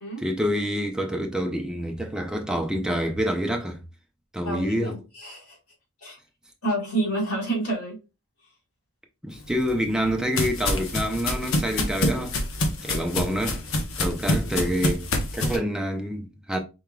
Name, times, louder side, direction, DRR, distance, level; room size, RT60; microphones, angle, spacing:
voice 1, 0.2-3.8 4.3-5.0 9.2-12.4 12.8-13.6 14.0-16.6, equal, 5° right, 0.5 m, -27 dB
voice 2, 4.4-5.6 6.0-6.2 6.6-8.0, right 2 dB, 85° left, 2.0 m, -29 dB
sound 1, 9.4-15.6, left 1 dB, 60° left, 0.8 m, -27 dB
4.7 x 3.5 x 2.3 m
head